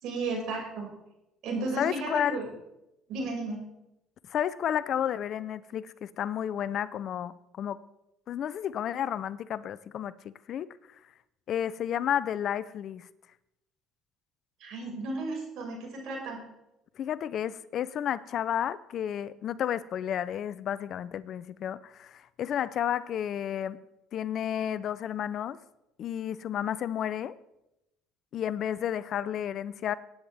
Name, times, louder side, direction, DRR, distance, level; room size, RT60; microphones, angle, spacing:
voice 1, 0.0-0.9 1.4-2.4 3.1-3.6 14.6-16.4, right 3 dB, 70° right, 5.6 m, -34 dB
voice 2, 1.8-2.4 4.3-7.8 8.3-10.7 11.5-13.1 17.0-23.8 24.1-25.6 26.0-27.4 28.3-29.9, left 10 dB, 55° left, 0.5 m, -31 dB
20.0 x 9.5 x 3.5 m
supercardioid pair, 90°, 0 cm